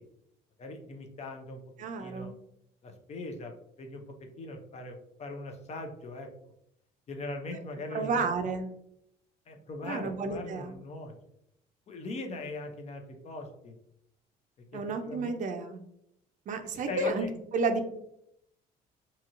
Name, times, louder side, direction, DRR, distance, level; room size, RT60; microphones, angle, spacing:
voice 1, 0.6-1.6 2.0-2.3 2.8-4.0 4.4-6.3 7.1-8.2 9.5-11.1 11.9-13.8 14.7-15.3 16.7-17.3, left 2 dB, 40° left, 4 dB, 0.5 m, -40 dB
voice 2, 1.8-2.4 7.9-8.7 9.8-10.8 14.7-15.8 16.5-17.3 17.5-18.0, right 4 dB, 50° right, 7 dB, 0.4 m, -31 dB
2.8 x 2.8 x 2.5 m, 0.76 s
cardioid pair, 110°, 17 cm